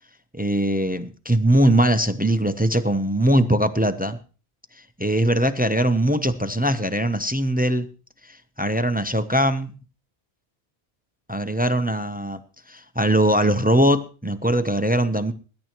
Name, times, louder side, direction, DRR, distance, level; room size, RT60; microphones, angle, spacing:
voice 1, 0.3-4.2 4.7-7.9 8.2-9.8 11.3-12.4 12.7-15.3, right 1 dB, 10° right, 10 dB, 0.6 m, -21 dB
20.5 x 11.0 x 3.0 m, 0.36 s
omnidirectional pair, 1.1 m